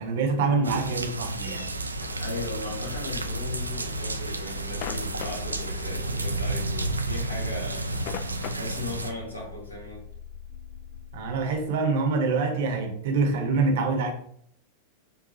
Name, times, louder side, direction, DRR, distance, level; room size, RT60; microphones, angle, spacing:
voice 1, 0.0-1.7 11.1-14.1, right 4 dB, 55° right, 0.8 m, -25 dB
sound 1, 0.6-9.1, right 2 dB, 80° right, 0.3 m, -31 dB
sound 2, 1.2-11.8, left 4 dB, 30° left, 1.4 m, -44 dB
sound 3, 2.0-9.0, left 11 dB, 45° left, 0.3 m, -43 dB
voice 2, 2.2-8.0 8.5-10.1, left 2 dB, 80° left, 1.4 m, -37 dB
6.7 x 2.3 x 2.9 m
figure-of-eight pair, 90°, 0 cm